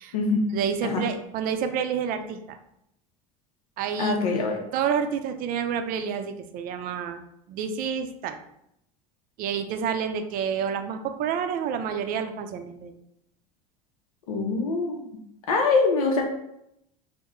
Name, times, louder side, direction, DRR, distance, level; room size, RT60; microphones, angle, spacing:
voice 1, 0.5-2.6 3.8-4.2 4.7-7.2 7.5-8.4 9.4-12.9, right 7 dB, 50° right, 8 dB, 0.4 m, -29 dB
voice 2, 4.0-4.6 14.3-15.0 15.5-16.2, left 4 dB, 85° left, 1 dB, 0.6 m, -24 dB
2.9 x 2.1 x 3.6 m, 0.78 s
hypercardioid pair, 80°, 18 cm